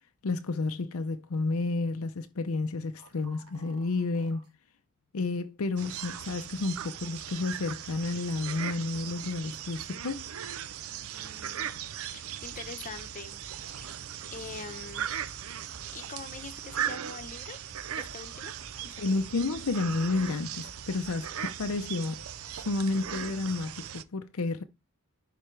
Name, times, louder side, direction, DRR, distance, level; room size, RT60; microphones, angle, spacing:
voice 1, 0.2-4.4 5.1-10.3 19.0-22.2 22.5-24.6, left 3 dB, 70° left, 0.6 m, -31 dB
sound 1, 3.0-4.5 5.2-5.3 5.9-6.0 6.7-6.8, right 4 dB, 85° right, 1.6 m, -56 dB
sound 2, 5.8-24.0, right 9 dB, 70° right, 0.5 m, -38 dB
voice 2, 10.9-11.7 12.1-13.9 14.3-15.1 15.9-17.6 18.0-18.5 18.8-19.2 21.2-21.4, left 4 dB, 35° left, 1.0 m, -45 dB
sound 3, 12.4-23.5, equal, 10° right, 1.9 m, -56 dB
11.0 x 4.2 x 3.3 m
head